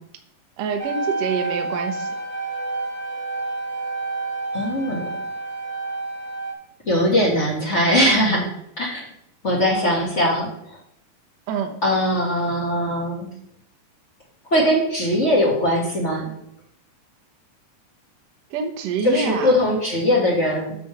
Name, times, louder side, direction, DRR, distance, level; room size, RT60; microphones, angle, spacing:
voice 1, 0.6-2.1 11.5-11.7 18.5-19.5, right 6 dB, 65° right, 5 dB, 1.7 m, -26 dB
sound 1, 0.8-6.5, right 3 dB, 35° right, 1.1 m, -29 dB
voice 2, 4.5-5.1 6.9-8.5 8.8-9.0 9.4-10.8 11.8-13.3 14.5-16.3 19.0-20.8, equal, 55° left, -4 dB, 0.7 m, -20 dB
9.5 x 3.4 x 6.8 m, 0.72 s
omnidirectional pair, 4.0 m